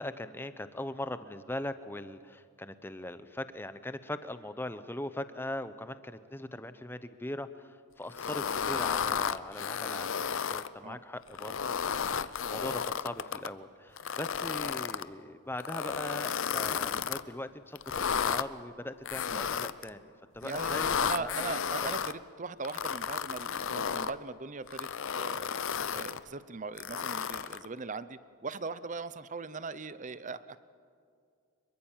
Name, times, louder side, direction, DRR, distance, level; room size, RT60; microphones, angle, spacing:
voice 1, 0.0-11.6 11.9-21.3 21.8-21.9, left 1 dB, 10° left, 12 dB, 0.8 m, -40 dB
sound 1, 8.1-10.7 11.3-13.5 14.0-15.0 15.6-17.2 17.8-18.4 19.1-19.9 20.4-22.1 22.6-24.1 24.7-26.2 26.8-27.7, left 7 dB, 55° left, 0.6 m, -33 dB
voice 2, 20.4-24.9 25.2-25.5 25.9-30.6, right 4 dB, 35° right, 15 dB, 0.7 m, -40 dB
25.0 x 22.5 x 7.4 m, 2.3 s
head